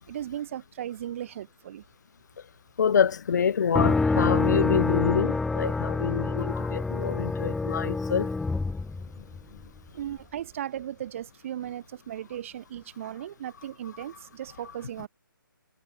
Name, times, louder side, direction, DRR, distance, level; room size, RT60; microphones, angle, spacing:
voice 1, 0.1-1.8 9.9-15.1, right 11 dB, 35° right, 5.1 m, -36 dB
voice 2, 2.8-8.3, left 7 dB, 55° left, 2.2 m, -26 dB
sound 1, 3.7-9.6, left 3 dB, 5° left, 1.0 m, -27 dB
hypercardioid pair, 160°, 11 cm